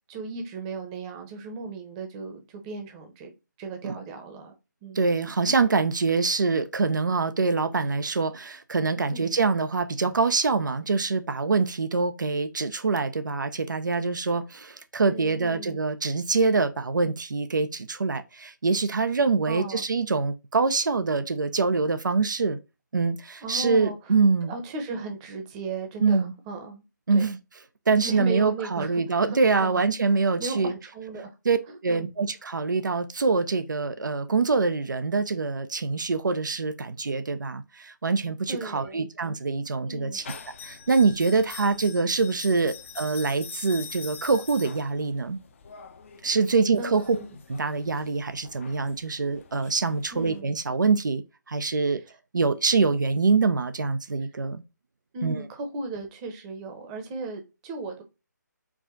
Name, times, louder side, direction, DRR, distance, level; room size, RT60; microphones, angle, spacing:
voice 1, 0.1-3.3 3.6-4.5 4.8-5.0 9.1-9.3 15.1-15.8 19.5-19.8 23.4-24.1 24.5-26.8 27.1-27.2 28.0-29.8 30.4-31.3 31.9-32.1 38.5-39.0 39.8-40.2 46.2-46.3 46.8-47.2 50.1-50.5 55.1-58.0, right 3 dB, 20° right, 0.8 m, -36 dB
voice 2, 4.9-22.6 22.9-24.5 26.0-26.3 27.1-27.4 27.9-30.7 31.5-31.6 31.8-45.4 46.2-47.2 47.5-52.0 52.3-54.6 55.2-55.4, right 4 dB, 80° right, 0.6 m, -25 dB
sound 1, 40.2-50.4, left 6 dB, 40° left, 0.6 m, -44 dB
4.8 x 2.4 x 3.7 m
figure-of-eight pair, 155°, 10 cm